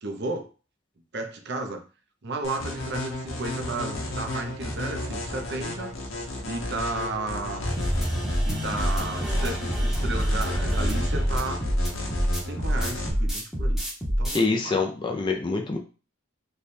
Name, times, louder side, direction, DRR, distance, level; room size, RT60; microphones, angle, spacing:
voice 1, 0.0-0.5 1.1-1.8 2.2-5.9 6.4-7.7 8.4-11.6 12.4-14.9, right 2 dB, 55° right, 5 dB, 0.6 m, -33 dB
sound 1, 2.4-13.1, left 1 dB, 80° left, 0.9 m, -33 dB
sound 2, 7.6-14.4, equal, ahead, 0.8 m, -26 dB
voice 2, 14.3-15.8, left 3 dB, 25° left, 2 dB, 0.4 m, -25 dB
3.3 x 2.3 x 4.1 m, 0.35 s
head